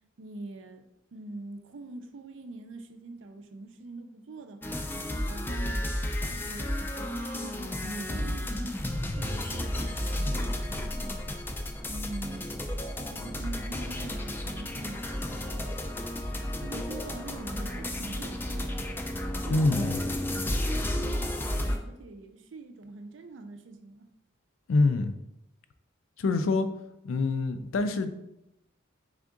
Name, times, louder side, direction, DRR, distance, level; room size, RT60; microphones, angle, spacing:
voice 1, 0.2-0.8 1.1-5.8 6.3-8.8 9.2-11.4 11.9-15.7 16.6-18.7 19.4-20.1 20.7-24.1, right 2 dB, 70° right, 0.5 m, -44 dB
sound 1, 4.6-21.8, left 1 dB, 10° left, 0.3 m, -32 dB
voice 2, 19.5-20.0 24.7-25.1 26.2-26.7 27.0-28.1, left 3 dB, 85° left, 0.4 m, -25 dB
3.6 x 3.6 x 3.7 m
head